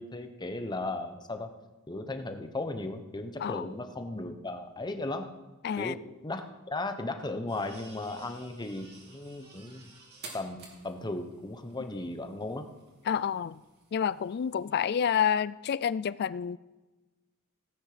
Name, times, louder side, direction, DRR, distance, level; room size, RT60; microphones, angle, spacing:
voice 1, 0.0-1.5 1.9-5.3 5.8-6.4 6.7-9.9 10.3-12.7, left 2 dB, 20° left, 7 dB, 1.0 m, -36 dB
voice 2, 5.6-5.9 13.1-13.6 13.9-16.6, left 8 dB, 50° left, 19 dB, 0.3 m, -29 dB
sound 1, 7.5-15.3, right 3 dB, 50° right, 3.1 m, -53 dB
17.0 x 8.9 x 5.0 m, 1.2 s
head